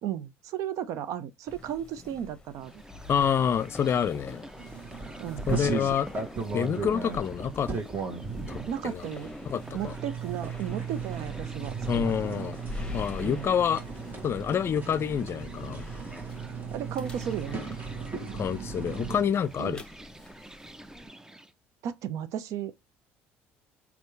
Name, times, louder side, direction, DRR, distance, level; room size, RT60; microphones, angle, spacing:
voice 1, 0.0-2.8 5.2-5.5 8.7-9.3 9.7-12.5 13.2-13.5 16.7-17.7 19.6-19.8 21.8-22.7, right 9 dB, 65° right, 0.7 m, -35 dB
sound 1, 1.5-21.1, left 2 dB, 15° left, 1.1 m, -46 dB
sound 2, 2.6-21.5, right 1 dB, 10° right, 0.6 m, -47 dB
voice 2, 3.1-4.4 5.5-6.1 6.5-7.7 8.5-9.0 9.5-9.9 11.9-12.6 12.9-13.8 14.2-15.9 18.3-19.8, left 8 dB, 45° left, 0.5 m, -27 dB
sound 3, 4.6-19.2, right 5 dB, 35° right, 1.8 m, -36 dB
4.4 x 2.8 x 3.1 m
hypercardioid pair, 65°, 6 cm